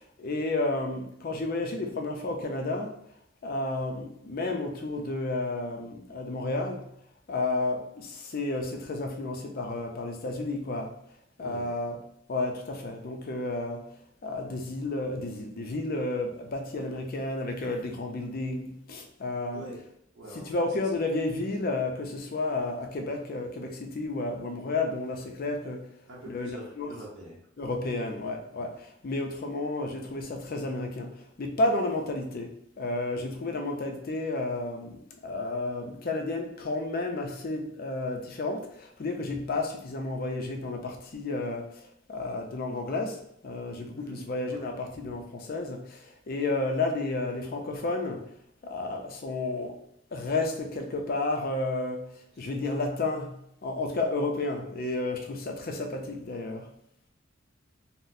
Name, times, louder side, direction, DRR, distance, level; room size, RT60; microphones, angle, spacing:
voice 1, 0.0-2.9 3.4-6.9 7.3-11.0 11.4-12.0 12.3-13.8 14.2-19.6 20.4-25.8 26.3-26.9 27.6-32.5 32.8-48.2 48.6-49.8 50.1-56.7, left 2 dB, 45° left, 3 dB, 0.5 m, -32 dB
voice 2, 11.4-11.7 19.4-19.8 20.1-20.7 20.9-21.0 26.1-27.7 28.6-28.8 43.9-45.2 52.3-52.5, right 1 dB, 65° right, -5 dB, 0.7 m, -46 dB
3.9 x 2.0 x 2.6 m, 0.75 s
head